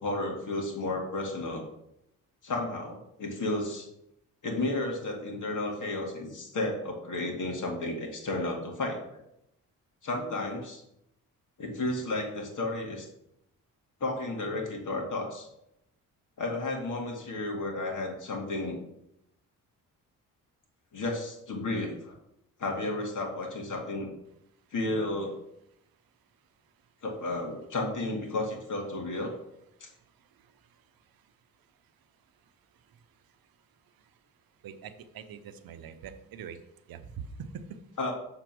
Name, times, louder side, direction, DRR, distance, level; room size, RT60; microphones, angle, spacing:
voice 1, 0.0-1.6 2.4-3.9 4.4-9.2 10.0-10.8 11.6-13.1 14.0-15.5 16.4-18.8 20.9-22.2 22.6-24.1 24.7-25.4 27.0-29.3 29.8-29.9 38.0-38.1, left 2 dB, 55° left, 1 dB, 2.2 m, -32 dB
voice 2, 34.6-36.6 36.9-37.8, right 7 dB, 75° right, 10 dB, 0.8 m, -43 dB
6.9 x 3.9 x 6.0 m, 0.81 s
cardioid pair, 70°, 36 cm